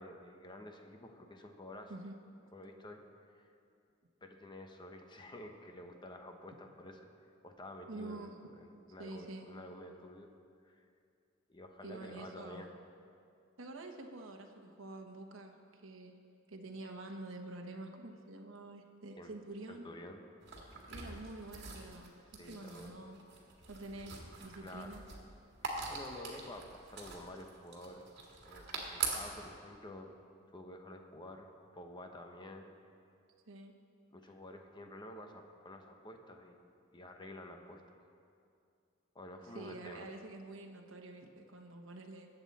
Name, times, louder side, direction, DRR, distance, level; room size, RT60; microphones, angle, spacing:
voice 1, 0.0-1.9 2.5-3.0 3.3-3.5 4.2-7.0 7.4-8.3 8.6-10.3 10.6-10.8 11.5-12.7 19.2-19.3 19.7-20.2 21.1-21.2 22.4-22.9 24.6-25.0 25.6-28.1 28.4-30.1 30.5-32.7 34.1-38.0 39.1-40.1, left 1 dB, 25° left, 4 dB, 1.0 m, -50 dB
voice 2, 7.9-8.3 9.0-9.5 11.8-12.6 13.6-16.2 16.5-19.9 20.9-22.1 22.4-23.2 23.7-25.0 33.5-33.7 39.4-42.3, right 2 dB, 80° right, 3 dB, 1.1 m, -47 dB
sound 1, 20.4-29.5, right 4 dB, 60° right, 2.1 m, -44 dB
20.5 x 8.0 x 4.2 m, 2.4 s
head